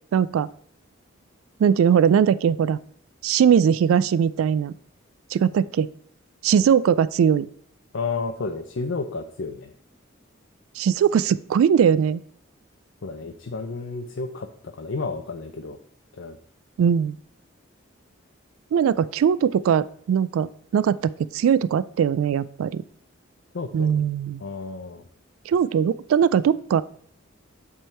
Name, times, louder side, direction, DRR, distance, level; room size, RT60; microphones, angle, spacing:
voice 1, 0.1-0.5 1.6-2.8 3.2-4.7 5.3-5.9 6.4-7.5 10.8-12.2 16.8-17.2 18.7-22.8 23.7-24.4 25.5-26.8, right 8 dB, 90° right, 17 dB, 0.3 m, -20 dB
voice 2, 7.9-9.7 13.0-15.8 16.1-16.4 23.5-24.0 24.4-25.0, left 4 dB, 65° left, 6 dB, 0.5 m, -31 dB
8.2 x 3.6 x 4.3 m, 0.63 s
head